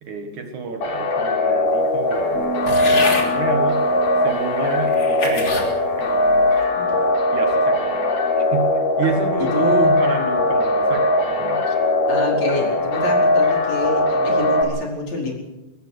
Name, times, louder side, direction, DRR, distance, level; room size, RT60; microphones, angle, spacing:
voice 1, 0.0-3.9 4.2-5.6 6.0-6.6 7.3-8.1 8.4-11.7, right 4 dB, 60° right, 5 dB, 2.9 m, -29 dB
sound 1, 0.8-14.6, left 1 dB, 85° left, 5.4 m, -20 dB
Bass guitar, 2.3-8.6, right 9 dB, 80° right, 7.3 m, -37 dB
voice 2, 2.6-3.0 6.7-6.8 9.4-9.9 12.1-15.3, left 2 dB, 50° left, -1 dB, 6.0 m, -27 dB
sound 2, 2.7-3.3 4.1-4.2 4.9-5.7 6.3-6.7, left 3 dB, 35° left, 3.7 m, -26 dB
23.0 x 18.5 x 6.5 m, 1.0 s
omnidirectional pair, 4.2 m